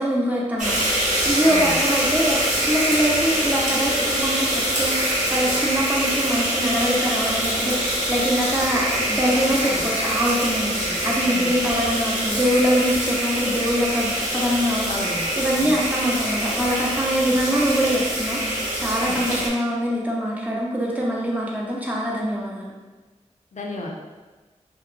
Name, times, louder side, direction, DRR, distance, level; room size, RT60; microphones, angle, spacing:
voice 1, 0.0-14.9 15.4-22.7, equal, 15° right, -4 dB, 0.5 m, -24 dB
sound 1, 0.6-19.5, right 1 dB, 80° right, 0.7 m, -24 dB
voice 2, 1.5-1.8 9.3-9.9 10.8-11.5 14.9-15.8 19.0-19.2 23.5-23.9, left 2 dB, 75° left, -1 dB, 0.5 m, -34 dB
Crumpling crinkling, 5.2-8.0 8.3-12.7, right 1 dB, 50° right, 0.9 m, -39 dB
2.8 x 2.1 x 2.5 m, 1.3 s
wide cardioid pair, 75°, 12 cm